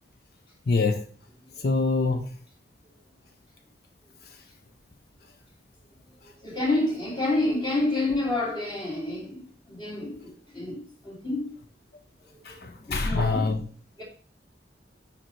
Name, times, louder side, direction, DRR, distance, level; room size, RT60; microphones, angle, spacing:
voice 1, 0.7-1.0 1.6-2.3 12.5-13.6, left 3 dB, 60° left, 0.6 m, -25 dB
voice 2, 6.4-11.5 12.5-13.4 14.0-14.1, left 2 dB, 25° left, 2.4 m, -29 dB
6.5 x 4.4 x 4.5 m
head